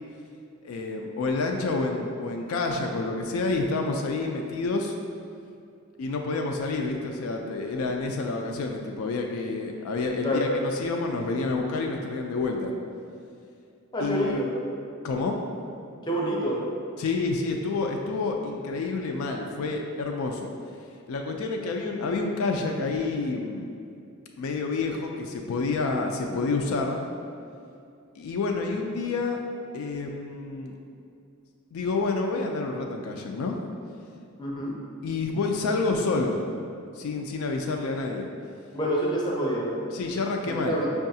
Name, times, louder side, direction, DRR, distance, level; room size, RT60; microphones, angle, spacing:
voice 1, 0.6-4.9 6.0-12.7 14.0-14.4 15.0-15.4 17.0-20.5 21.1-23.7 24.4-27.0 28.2-29.4 29.7-30.7 31.7-33.6 35.0-36.5 37.0-38.3 39.9-40.8, left 3 dB, 75° left, 2 dB, 0.3 m, -28 dB
voice 2, 10.2-10.6 13.9-14.6 16.1-16.6 34.4-34.7 38.7-39.8 40.5-40.9, equal, 20° left, -4 dB, 0.5 m, -27 dB
5.5 x 2.3 x 2.7 m, 2.5 s
head